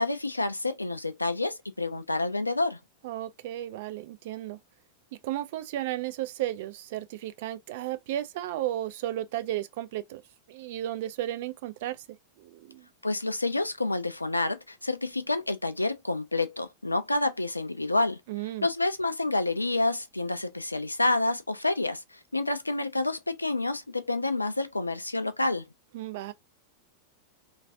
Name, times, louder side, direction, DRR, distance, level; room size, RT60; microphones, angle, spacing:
voice 1, 0.0-2.8 13.0-18.2 18.6-25.7, left 2 dB, 85° left, 0.3 m, -28 dB
voice 2, 3.0-4.6 5.2-10.2 10.5-12.0 12.4-12.9 18.3-18.7 25.9-26.3, right 13 dB, 50° right, 0.3 m, -34 dB
2.3 x 2.2 x 2.5 m
figure-of-eight pair, 90°, 0 cm